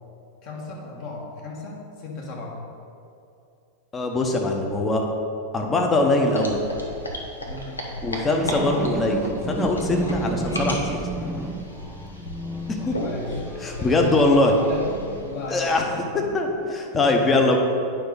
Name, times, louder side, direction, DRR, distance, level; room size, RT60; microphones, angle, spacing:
voice 1, 0.4-2.6 7.4-7.9 12.8-16.7 17.2-17.6, left 3 dB, 40° left, -2 dB, 1.6 m, -36 dB
voice 2, 3.9-5.0 5.5-6.6 8.0-11.0 12.7-13.0 13.6-14.6 15.5-15.8 16.3-17.6, left 2 dB, 20° left, 2 dB, 0.9 m, -22 dB
sound 1, 6.3-15.8, equal, 80° left, 0.9 m, -35 dB
sound 2, 8.3-15.7 16.3-16.4, right 2 dB, 10° right, 0.4 m, -32 dB
9.1 x 5.2 x 4.0 m, 2.6 s
figure-of-eight pair, 90°, 0 cm